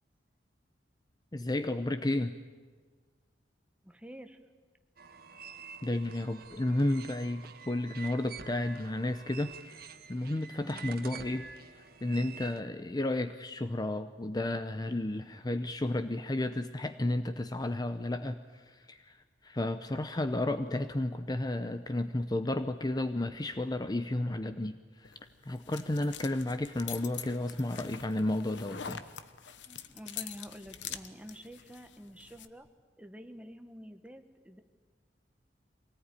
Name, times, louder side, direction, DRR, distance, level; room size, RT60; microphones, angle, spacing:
voice 1, 1.3-2.4 5.8-9.8 10.1-19.2 19.4-25.1 25.5-29.0, left 1 dB, 20° left, 10 dB, 0.7 m, -32 dB
voice 2, 3.8-4.4 10.6-10.9 29.7-32.7 33.0-34.6, equal, 5° right, 7 dB, 1.4 m, -48 dB
sound 1, 5.0-12.6, right 5 dB, 55° right, 1.5 m, -48 dB
sound 2, 25.0-32.5, left 8 dB, 80° left, 1.1 m, -45 dB
24.0 x 18.5 x 9.9 m, 1.5 s
head